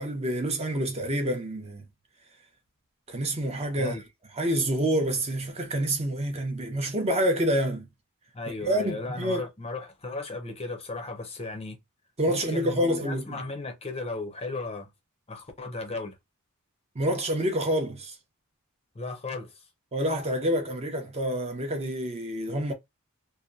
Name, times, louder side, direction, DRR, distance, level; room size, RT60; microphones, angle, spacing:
voice 1, 0.0-1.8 3.1-4.0 4.4-7.9 8.6-9.4 12.2-13.4 17.0-18.2 19.9-22.7, equal, 30° right, 0.7 m, -27 dB
voice 2, 8.3-11.8 12.3-14.9 15.3-16.2 18.9-19.7, left 3 dB, 30° left, 0.6 m, -36 dB
2.8 x 2.1 x 2.4 m
head